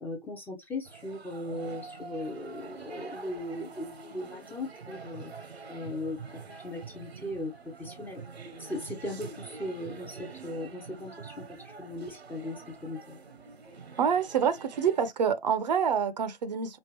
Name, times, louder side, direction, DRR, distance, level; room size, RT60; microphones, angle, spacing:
voice 1, 0.0-5.3 5.7-8.2 8.6-13.2, left 1 dB, 5° left, 0.6 m, -38 dB
sound 1, 0.8-15.1, right 4 dB, 75° right, 1.0 m, -46 dB
voice 2, 14.0-16.8, right 7 dB, 45° right, 0.7 m, -27 dB
5.3 x 2.4 x 3.1 m
figure-of-eight pair, 120°, 32 cm